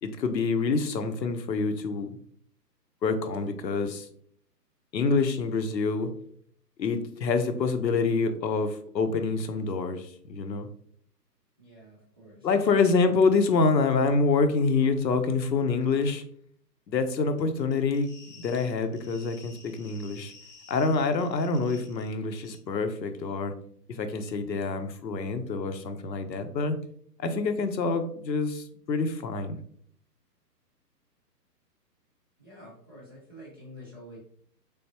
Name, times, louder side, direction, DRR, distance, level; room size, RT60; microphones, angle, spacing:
voice 1, 0.0-2.1 3.0-4.1 4.9-6.1 6.8-10.7 12.4-16.2 16.9-20.3 20.7-23.5 24.0-26.8 27.2-29.6, left 4 dB, 90° left, 7 dB, 0.8 m, -26 dB
voice 2, 11.6-12.5 32.4-34.2, equal, 15° right, -6 dB, 0.4 m, -48 dB
sound 1, 17.4-22.1 22.4-22.6, left 4 dB, 25° left, 0.7 m, -52 dB
3.8 x 3.5 x 2.8 m, 0.62 s
hypercardioid pair, 145°, 49 cm